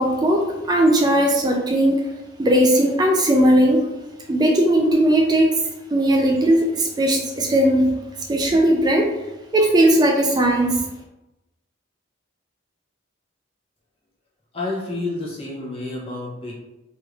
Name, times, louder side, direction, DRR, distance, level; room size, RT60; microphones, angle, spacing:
voice 1, 0.0-2.0 2.4-3.9 4.3-8.0 8.3-9.2 9.5-10.8, right 1 dB, 20° right, 1 dB, 0.3 m, -18 dB
voice 2, 14.5-16.5, left 2 dB, 30° left, -5 dB, 0.7 m, -29 dB
3.1 x 3.0 x 2.4 m, 0.97 s
head